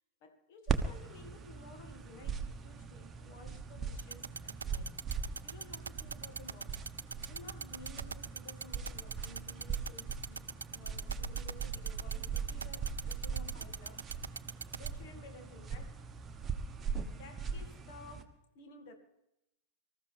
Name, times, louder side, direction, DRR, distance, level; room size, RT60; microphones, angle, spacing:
voice 1, 0.2-6.9 7.3-14.1 14.8-16.0 17.1-18.9, left 3 dB, 50° left, 2.4 m, -55 dB
sound 1, 0.7-18.2, right 5 dB, 20° right, 1.3 m, -40 dB
sound 2, 4.0-14.9, right 5 dB, 75° right, 0.4 m, -40 dB
25.0 x 14.0 x 3.6 m
figure-of-eight pair, 90°, 0 cm